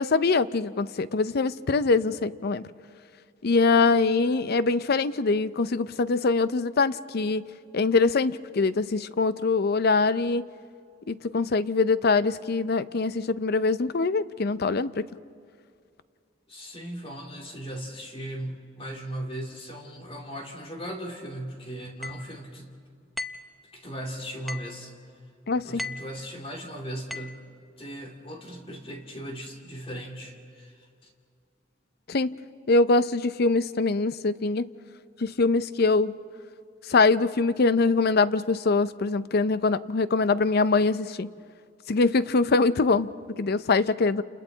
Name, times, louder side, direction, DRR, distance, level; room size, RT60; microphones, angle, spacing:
voice 1, 0.0-2.6 3.4-7.5 7.7-10.4 11.1-15.0 25.5-25.8 32.1-32.3 32.7-34.7 35.2-36.2 36.9-41.3 41.9-43.1 43.4-44.2, left 3 dB, 55° left, 15 dB, 0.6 m, -23 dB
voice 2, 16.5-22.7 23.7-24.9 25.6-27.4 27.8-31.1, right 1 dB, 30° left, 1 dB, 2.6 m, -38 dB
sound 1, 22.0-22.3 23.2-23.5 24.5-24.8 25.8-26.2 27.1-27.4, left 2 dB, ahead, 0.6 m, -36 dB
29.5 x 29.0 x 3.9 m, 2.3 s
head